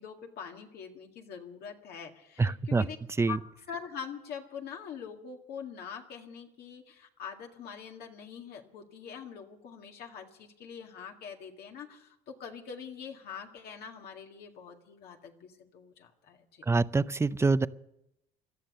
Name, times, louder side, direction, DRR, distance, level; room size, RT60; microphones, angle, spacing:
voice 1, 0.0-3.0 3.3-3.4 3.7-16.7, left 7 dB, 70° left, 2 dB, 2.0 m, -44 dB
voice 2, 2.4-2.8 3.2-3.4 16.7-17.7, right 3 dB, 15° right, 16 dB, 0.5 m, -25 dB
17.5 x 12.5 x 6.6 m, 0.82 s
cardioid pair, 110°, 17 cm